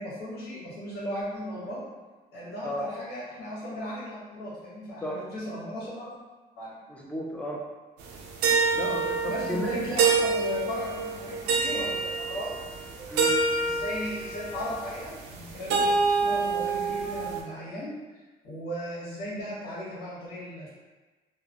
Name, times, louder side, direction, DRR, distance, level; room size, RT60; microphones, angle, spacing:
voice 1, 0.0-1.9 2.3-6.2 6.6-6.8 9.3-12.5 12.8-17.9 18.4-20.7, equal, 70° left, -8 dB, 1.3 m, -36 dB
voice 2, 6.9-7.6 8.7-9.7 13.1-13.4, equal, 5° left, -2 dB, 0.4 m, -33 dB
sound 1, 8.1-17.4, right 4 dB, 80° right, 0.4 m, -27 dB
2.9 x 2.0 x 2.5 m, 1.3 s
cardioid pair, 110°, 17 cm